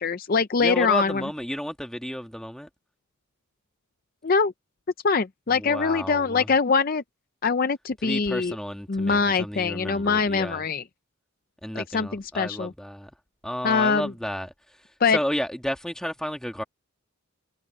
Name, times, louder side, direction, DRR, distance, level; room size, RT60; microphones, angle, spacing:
voice 1, 0.0-1.2 4.2-4.5 5.0-7.0 7.4-8.5 8.9-10.8 11.8-12.7 13.6-14.1 15.0-15.2, left 5 dB, 40° left, 0.5 m, -23 dB
voice 2, 0.6-2.7 5.5-6.5 8.0-10.6 11.6-13.1 13.4-14.5 15.1-16.6, equal, 5° left, 1.8 m, -32 dB
head